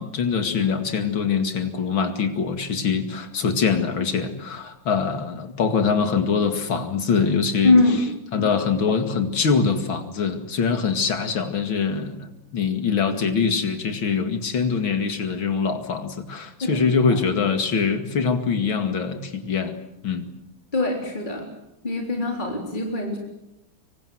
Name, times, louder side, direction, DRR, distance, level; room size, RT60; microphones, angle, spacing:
voice 1, 0.0-7.8 8.3-19.8 20.0-20.3, left 5 dB, 85° left, 7 dB, 3.0 m, -23 dB
voice 2, 7.6-8.0 16.6-16.8 20.7-21.5 21.8-23.2, left 3 dB, 25° left, 1 dB, 3.7 m, -22 dB
26.0 x 23.5 x 7.9 m, 0.90 s
omnidirectional pair, 2.1 m